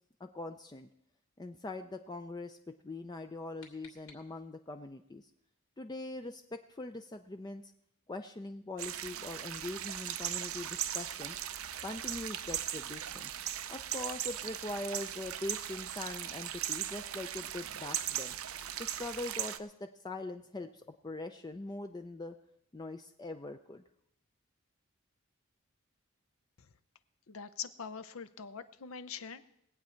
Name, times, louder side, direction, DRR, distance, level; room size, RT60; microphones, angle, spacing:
voice 1, 0.2-0.9 1.4-5.3 5.8-7.6 8.1-11.4 11.8-13.3 13.7-18.4 18.8-22.4 22.7-23.8, left 2 dB, 20° left, 6 dB, 0.5 m, -42 dB
sound 1, 3.1-4.8, left 4 dB, 85° left, 2.6 m, -60 dB
sound 2, 8.8-19.6, right 11 dB, 75° right, 0.6 m, -38 dB
voice 2, 27.3-29.5, left 6 dB, 70° left, 12 dB, 0.7 m, -43 dB
20.5 x 8.4 x 4.5 m, 0.73 s
head